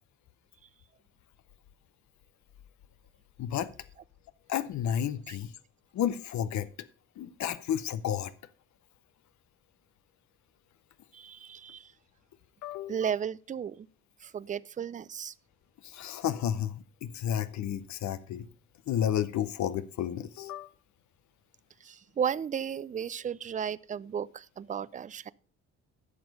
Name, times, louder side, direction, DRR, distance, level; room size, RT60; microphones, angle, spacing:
voice 1, 3.4-3.7 4.5-5.5 5.9-6.7 7.2-8.3 12.6-13.0 15.8-18.5 18.9-20.7, left 10 dB, 70° left, 0.7 m, -31 dB
voice 2, 11.1-11.9 12.9-13.9 14.2-15.3 21.8-25.3, right 8 dB, 25° right, 0.4 m, -34 dB
11.0 x 6.2 x 5.2 m
cardioid pair, 90°, 30 cm